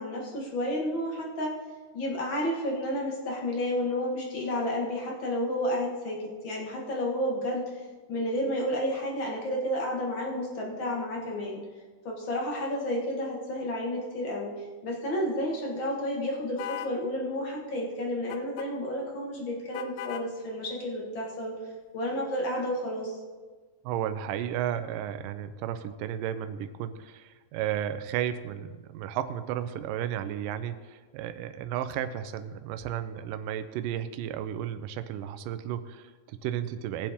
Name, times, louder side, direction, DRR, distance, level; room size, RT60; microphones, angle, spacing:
voice 1, 0.0-1.5 1.9-11.6 12.0-21.6 21.9-23.2, left 1 dB, 45° left, -2 dB, 1.9 m, -31 dB
sound 1, 16.6-17.0 18.3-18.7 19.7-20.3, left 9 dB, 85° left, 2.5 m, -37 dB
voice 2, 23.8-37.1, right 10 dB, 80° right, 10 dB, 2.2 m, -33 dB
19.5 x 7.5 x 3.6 m, 1.4 s
omnidirectional pair, 4.2 m